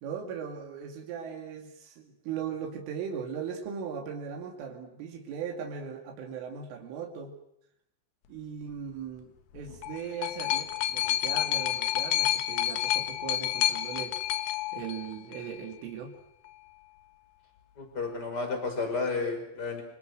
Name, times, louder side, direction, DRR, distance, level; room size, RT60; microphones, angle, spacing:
voice 1, 0.0-7.4 8.3-14.2 14.7-16.1, right 7 dB, 85° right, 2 dB, 5.0 m, -38 dB
sound 1, 9.6-15.6 16.5-16.6, left 12 dB, 65° left, 2.8 m, -29 dB
voice 2, 17.8-19.8, left 4 dB, 20° left, 5 dB, 5.8 m, -32 dB
27.0 x 27.0 x 6.4 m, 0.75 s
omnidirectional pair, 5.5 m